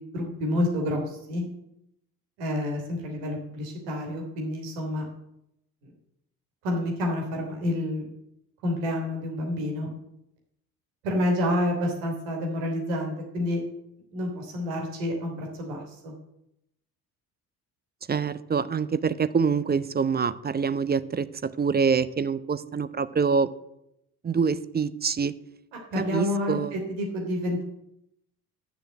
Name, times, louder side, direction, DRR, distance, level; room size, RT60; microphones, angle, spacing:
voice 1, 0.1-1.4 2.4-5.1 5.8-5.9 6.6-8.1 8.6-9.9 11.0-13.6 14.1-16.1 25.9-27.6, left 1 dB, 75° right, 1 dB, 3.3 m, -29 dB
voice 2, 18.1-23.5 24.2-25.3 26.0-26.7, right 5 dB, 20° right, 15 dB, 0.7 m, -25 dB
9.9 x 6.8 x 8.0 m, 0.80 s
figure-of-eight pair, 50°, 45 cm